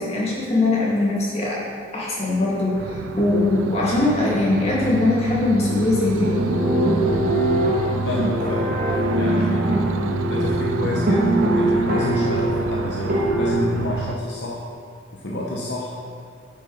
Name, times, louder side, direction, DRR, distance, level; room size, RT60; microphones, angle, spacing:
voice 1, 0.0-1.6 1.9-6.4, left 2 dB, 30° left, -6 dB, 2.0 m, -21 dB
sound 1, 2.7-14.2, right 4 dB, 85° right, 0.4 m, -29 dB
Abstract Loop, 6.2-13.5, right 1 dB, 45° right, 1.4 m, -22 dB
voice 2, 8.0-8.8 9.1-9.8 10.3-14.7 15.1-16.0, left 1 dB, 60° left, -3 dB, 0.8 m, -28 dB
9.8 x 6.5 x 3.9 m, 2.3 s
head